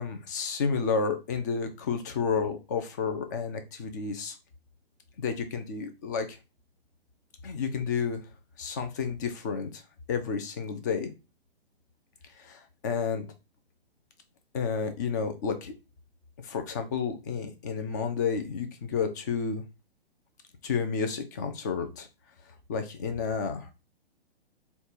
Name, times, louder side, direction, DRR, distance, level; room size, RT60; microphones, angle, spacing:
voice 1, 0.0-4.4 5.2-6.3 7.4-8.2 8.6-9.8 10.1-11.1 12.4-13.3 14.5-15.7 16.4-19.6 20.6-22.1 22.7-23.7, left 5 dB, 20° left, 7 dB, 0.4 m, -31 dB
4.4 x 2.3 x 4.1 m, 0.28 s
figure-of-eight pair, 120°, 32 cm